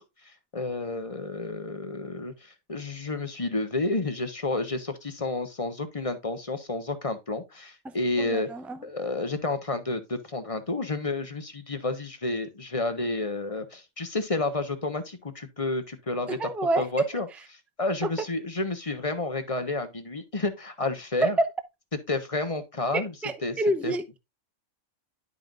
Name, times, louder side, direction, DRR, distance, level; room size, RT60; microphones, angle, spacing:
voice 1, 0.0-8.5 8.8-16.4 16.8-17.3 17.8-21.4 22.1-23.1 23.4-23.6 23.8-23.9, left 2 dB, 25° left, 1.1 m, -30 dB
voice 2, 7.8-8.8 16.3-16.9 18.0-18.1 21.2-21.5 22.9-24.2, right 2 dB, ahead, 0.5 m, -28 dB
11.0 x 5.7 x 2.5 m
omnidirectional pair, 1.4 m